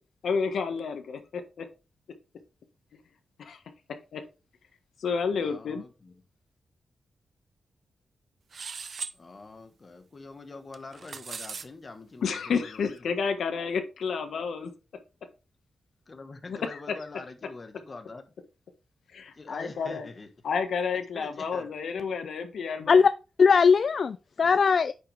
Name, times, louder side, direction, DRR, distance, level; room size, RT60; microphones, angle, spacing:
voice 1, 0.2-1.7 3.4-3.6 4.1-4.2 5.0-5.8 12.2-14.7 16.5-16.9 19.1-20.1 20.4-23.0, left 5 dB, 80° left, 1.5 m, -30 dB
voice 2, 5.3-6.1 9.1-13.0 16.1-18.2 19.3-20.3 21.1-21.7, left 3 dB, 30° left, 1.3 m, -44 dB
sound 1, 8.5-9.2 10.7-11.7, right 5 dB, 45° right, 0.7 m, -38 dB
voice 3, 23.4-24.9, left 5 dB, 50° left, 0.3 m, -20 dB
9.6 x 5.9 x 3.4 m
wide cardioid pair, 160°, 0 cm